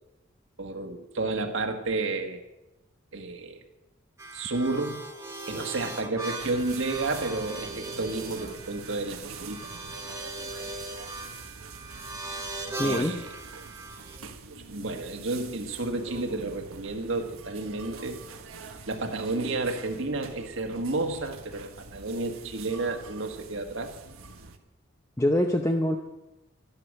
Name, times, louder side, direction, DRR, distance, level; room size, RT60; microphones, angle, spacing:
voice 1, 0.6-2.4 3.1-3.6 4.3-5.0 5.5-9.6 12.8-13.3 14.7-18.2 18.9-23.9, right 2 dB, 65° right, 3 dB, 1.7 m, -31 dB
sound 1, 4.2-14.2, right 2 dB, 15° right, 1.8 m, -39 dB
sound 2, 6.4-24.6, right 4 dB, 85° right, 1.4 m, -44 dB
voice 2, 12.8-13.2 25.2-26.0, left 1 dB, 15° left, 4 dB, 0.7 m, -24 dB
13.0 x 11.5 x 6.6 m, 0.99 s
head